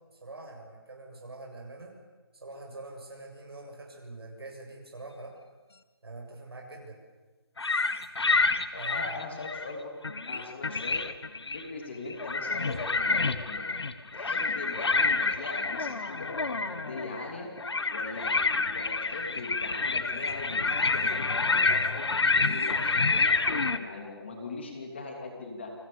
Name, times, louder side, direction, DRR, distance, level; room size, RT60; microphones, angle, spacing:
voice 1, 0.2-2.0 2.3-5.4 6.0-7.0 8.8-9.2, right 2 dB, 70° right, 0 dB, 7.6 m, -44 dB
sound 1, 7.6-9.7 10.0-11.7 12.1-23.8, left 3 dB, 90° left, 1.6 m, -28 dB
voice 2, 8.7-9.9 10.3-11.1 11.5-13.7 14.1-17.5 17.9-22.1 22.4-25.7, left 3 dB, 25° left, 2 dB, 2.9 m, -40 dB
29.0 x 21.5 x 7.0 m, 1.3 s
hypercardioid pair, 180°, 13 cm